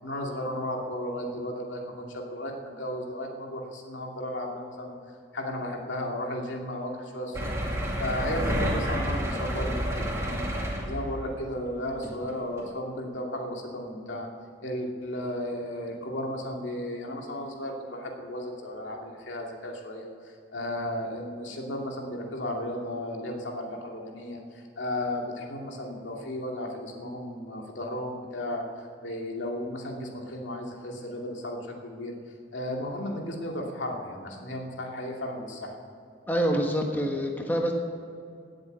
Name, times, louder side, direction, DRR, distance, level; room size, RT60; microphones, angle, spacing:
voice 1, 0.0-4.9 5.3-7.5 8.0-10.5 10.9-14.3 14.6-32.1 32.5-35.7, left 1 dB, 85° left, 0 dB, 2.6 m, -34 dB
sound 1, 7.3-11.3 12.0-12.2 12.6-12.7, equal, 15° right, 2.4 m, -29 dB
voice 2, 36.3-37.7, equal, 10° left, 1 dB, 1.4 m, -26 dB
18.5 x 7.9 x 8.1 m, 2.4 s
head